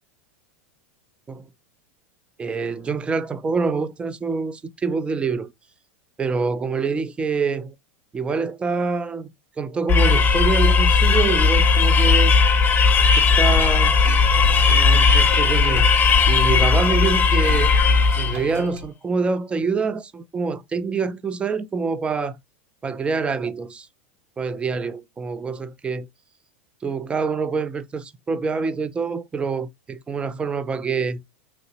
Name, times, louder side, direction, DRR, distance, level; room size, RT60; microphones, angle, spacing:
voice 1, 2.4-5.5 6.2-7.7 8.1-9.3 9.6-12.3 13.2-14.0 14.7-15.9 16.3-17.8 18.2-22.4 22.8-23.9 24.4-26.1 26.8-31.2, right 4 dB, 15° right, 0.4 m, -26 dB
sound 1, 9.9-18.5, left 5 dB, 25° left, 0.6 m, -17 dB
sound 2, 13.4-13.7 14.0-17.1 17.5-18.8, right 1 dB, 70° right, 1.2 m, -33 dB
3.0 x 2.7 x 2.8 m
hypercardioid pair, 110°, 7 cm